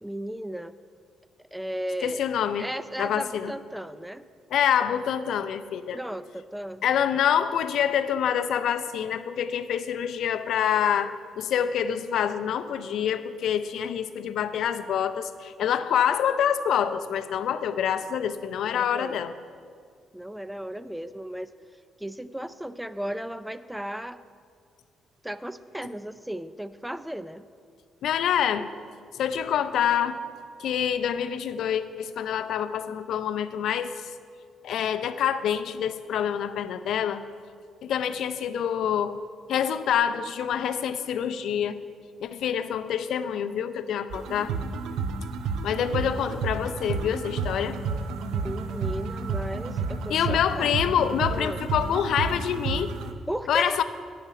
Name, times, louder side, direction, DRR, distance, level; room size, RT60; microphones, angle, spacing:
voice 1, 0.0-0.7 1.5-2.2 2.6-4.2 5.9-6.8 18.7-19.2 20.1-21.5 22.0-24.2 25.2-27.5 48.3-50.7 51.3-51.6 53.3-53.8, right 1 dB, 5° right, 13 dB, 0.4 m, -35 dB
voice 2, 2.0-2.7 3.0-3.5 4.5-6.0 6.8-19.3 28.0-28.7 29.1-30.2 30.6-34.1 34.6-37.2 37.8-39.2 39.5-41.8 42.2-44.5 45.6-47.8 50.1-52.9 53.5-53.8, left 9 dB, 75° left, 11 dB, 0.5 m, -26 dB
sound 1, 44.1-53.1, right 4 dB, 85° right, 0.6 m, -31 dB
10.0 x 5.8 x 8.2 m, 2.2 s
cardioid pair, 90°, 0 cm